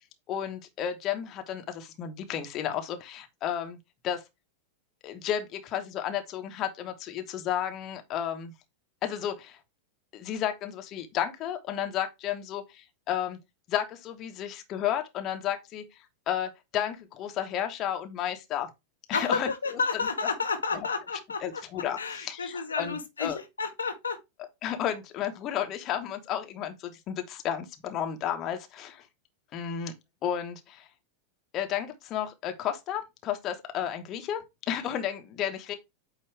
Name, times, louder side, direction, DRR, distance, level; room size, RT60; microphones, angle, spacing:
voice 1, 0.3-3.8 4.0-4.2 5.0-8.5 9.0-9.6 10.1-13.4 13.7-15.8 16.3-18.7 19.1-19.8 20.7-20.9 21.4-23.4 24.6-29.0 29.5-29.9 30.2-30.9 31.5-35.7, left 10 dB, 35° left, 1.1 m, -32 dB
voice 2, 19.1-21.6 22.0-24.2, left 4 dB, 75° left, 0.9 m, -31 dB
8.6 x 2.9 x 4.5 m
figure-of-eight pair, 90°, 0 cm